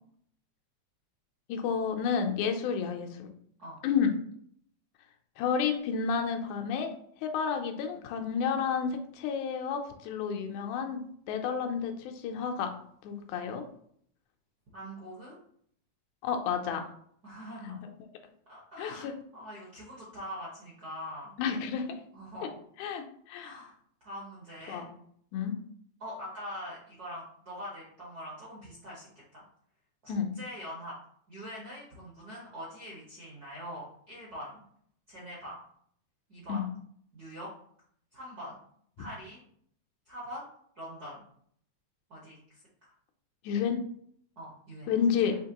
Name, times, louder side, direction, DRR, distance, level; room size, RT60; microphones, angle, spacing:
voice 1, 1.5-3.3 3.8-4.1 5.4-6.9 7.2-12.7 13.0-13.6 16.2-16.9 17.6-17.7 18.8-19.1 21.4-22.0 22.4-22.5 22.8-23.6 24.7-24.9 25.3-25.6 30.1-30.3 36.5-36.6 43.4-43.8 44.9-45.4, left 6 dB, 85° left, 4 dB, 2.0 m, -31 dB
voice 2, 14.7-15.3 17.2-17.9 18.5-21.4 22.1-22.6 23.4-23.7 24.0-24.8 26.0-29.4 30.0-31.0 31.3-34.5 35.1-35.6 36.3-36.6 37.1-37.5 38.1-38.5 39.0-39.4 40.1-40.5 40.7-41.2 42.1-42.6 44.4-44.9 45.2-45.3, equal, 60° right, -6 dB, 1.0 m, -43 dB
6.4 x 2.9 x 2.8 m, 0.65 s
omnidirectional pair, 3.4 m